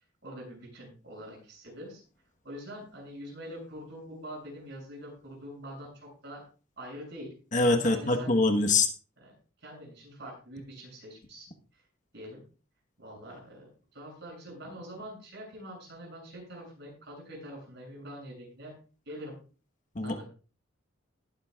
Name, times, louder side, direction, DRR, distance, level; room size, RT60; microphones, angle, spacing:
voice 1, 0.2-2.0 2.4-6.4 6.8-7.3 7.8-8.3 9.2-9.3 9.6-11.8 12.1-12.4 13.0-18.7 19.1-19.4 20.0-20.3, equal, 60° right, -1 dB, 7.6 m, -44 dB
voice 2, 7.5-8.9 20.0-20.2, left 3 dB, 40° left, 4 dB, 1.2 m, -24 dB
19.5 x 9.6 x 2.4 m, 0.36 s
head